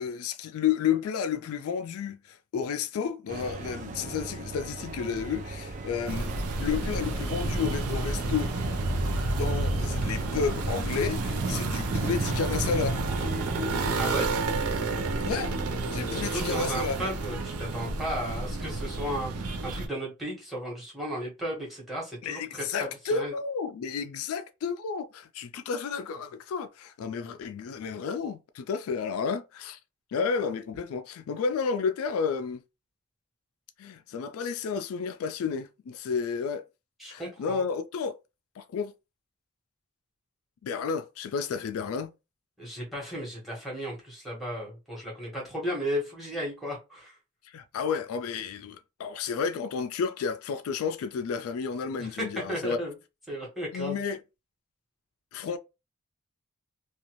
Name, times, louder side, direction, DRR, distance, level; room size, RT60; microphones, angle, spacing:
voice 1, 0.0-6.3 6.6-8.7 9.4-13.1 15.2-15.5 15.9-17.0 22.2-29.8 30.1-32.6 33.8-36.6 37.1-38.2 38.6-38.9 40.6-42.1 47.4-52.8 53.7-54.2 55.3-55.6, left 6 dB, 75° left, 0.3 m, -31 dB
sound 1, 3.3-13.9, right 3 dB, 35° right, 0.4 m, -37 dB
sound 2, 6.1-19.9, right 2 dB, 90° right, 0.6 m, -30 dB
voice 2, 14.0-14.3 16.1-23.3 37.0-37.6 42.6-47.2 52.0-52.9 53.3-54.0, equal, ahead, 1.2 m, -35 dB
2.6 x 2.3 x 2.9 m
head